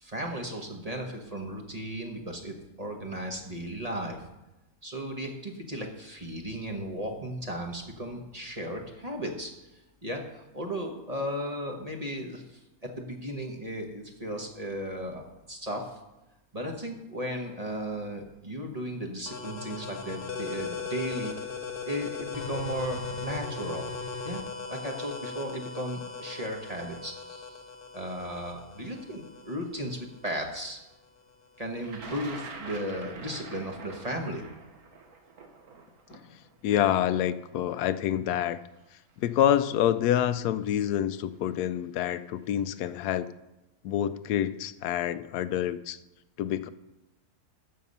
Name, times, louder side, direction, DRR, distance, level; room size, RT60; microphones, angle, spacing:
voice 1, 0.0-4.2 4.8-12.6 13.0-15.2 15.5-16.0 16.5-21.3 21.8-23.9 24.2-24.4 24.7-27.6 27.9-30.8 31.6-34.4, equal, 25° right, 2 dB, 1.4 m, -35 dB
sound 1, 19.3-30.6, left 5 dB, 45° left, 0.9 m, -38 dB
Thunder, 31.8-37.8 38.8-38.9 40.0-40.2 40.5-41.0, right 4 dB, 70° right, 1.7 m, -45 dB
voice 2, 36.6-38.6 39.2-43.3 43.8-46.0 46.4-46.7, left 11 dB, 85° left, 13 dB, 1.1 m, -27 dB
13.0 x 7.6 x 5.5 m, 0.99 s
omnidirectional pair, 1.6 m